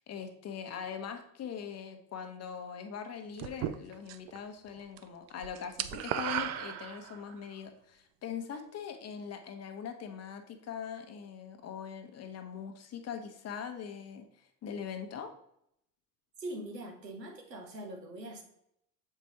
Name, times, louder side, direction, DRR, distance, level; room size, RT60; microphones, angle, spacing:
voice 1, 0.0-14.3 14.6-15.3, left 7 dB, 30° left, 6 dB, 0.9 m, -42 dB
sound 1, 3.4-4.4 4.7-7.4, right 12 dB, 35° right, 0.4 m, -36 dB
voice 2, 16.4-18.4, right 1 dB, 85° right, 2 dB, 1.3 m, -42 dB
7.2 x 4.7 x 2.8 m, 0.74 s
figure-of-eight pair, 70°, 48 cm